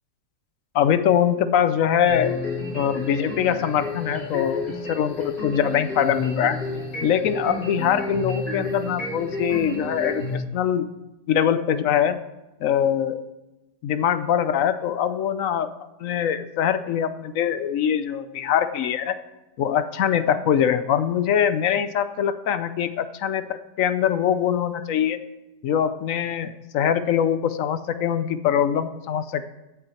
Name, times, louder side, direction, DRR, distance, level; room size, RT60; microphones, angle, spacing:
voice 1, 0.7-2.3 2.7-6.6 7.0-10.9 11.3-12.2 12.6-13.2 13.8-15.7 16.0-19.1 19.6-25.2 25.6-29.5, left 9 dB, 65° left, 12 dB, 0.9 m, -23 dB
sound 1, 2.1-10.3, left 2 dB, 90° left, 5.0 m, -31 dB
16.0 x 8.7 x 4.4 m, 1.0 s
omnidirectional pair, 1.8 m